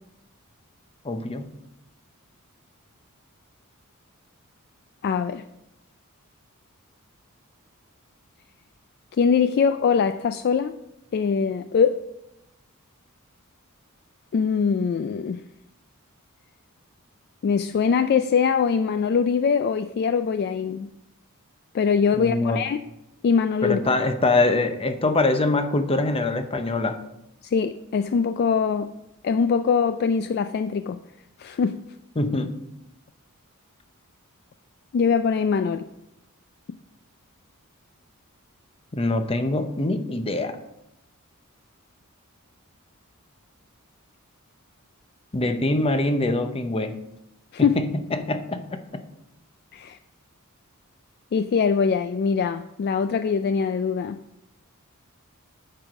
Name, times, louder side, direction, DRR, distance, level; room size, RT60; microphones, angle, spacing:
voice 1, 1.0-1.5 22.2-22.6 23.6-27.0 32.2-32.5 38.9-40.6 45.3-46.9 47.6-48.8, left 2 dB, 25° left, 8 dB, 0.7 m, -24 dB
voice 2, 5.0-5.4 9.2-10.7 11.1-12.0 14.3-15.4 17.4-20.9 21.7-22.8 23.2-23.8 27.4-28.9 29.2-31.0 31.4-31.8 34.9-35.8 47.5-47.8 49.7-50.0 51.3-54.2, left 6 dB, 45° left, 10 dB, 0.3 m, -22 dB
8.7 x 4.7 x 6.3 m, 0.87 s
head